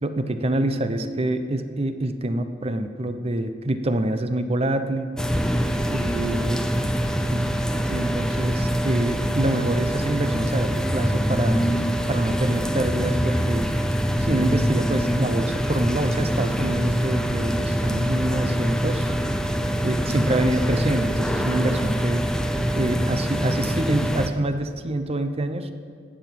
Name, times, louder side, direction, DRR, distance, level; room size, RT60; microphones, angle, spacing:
voice 1, 0.0-5.1 5.9-6.6 7.3-11.7 12.1-13.7 14.2-19.1 19.8-22.2 22.7-25.7, right 1 dB, 35° right, 9 dB, 0.7 m, -26 dB
sound 1, 5.2-24.3, equal, 5° left, 0.6 m, -24 dB
17.0 x 7.3 x 5.9 m, 2.1 s
head